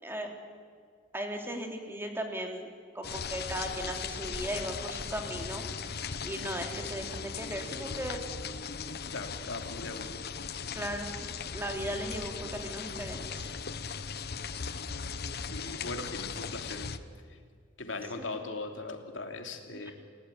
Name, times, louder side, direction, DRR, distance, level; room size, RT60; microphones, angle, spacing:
voice 1, 1.1-2.7 2.9-6.0 6.2-8.2 10.0-10.1 10.7-13.5 18.2-18.4 19.8-19.9, right 1 dB, 10° right, 3 dB, 3.3 m, -37 dB
sound 1, 3.0-17.0, left 5 dB, 55° left, 1.1 m, -38 dB
voice 2, 9.1-10.2 15.5-16.9 17.3-17.4 17.8-19.9, left 3 dB, 75° left, 5 dB, 3.1 m, -39 dB
29.0 x 17.0 x 10.0 m, 2.1 s
head